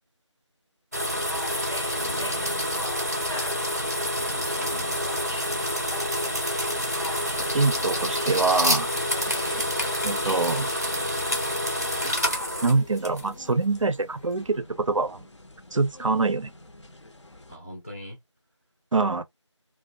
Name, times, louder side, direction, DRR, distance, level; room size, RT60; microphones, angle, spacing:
sound 1, 0.9-13.5, equal, 35° right, 0.4 m, -28 dB
sound 2, 1.1-17.6, left 2 dB, 70° left, 0.6 m, -42 dB
voice 1, 1.9-2.9 4.1-5.3 17.5-18.2, equal, 25° left, 0.5 m, -41 dB
voice 2, 7.5-8.9 10.0-10.7 12.0-12.1 12.6-15.2 15.7-16.5 18.9-19.2, right 3 dB, 90° right, 0.5 m, -24 dB
2.5 x 2.1 x 2.3 m
figure-of-eight pair, 170°, 16 cm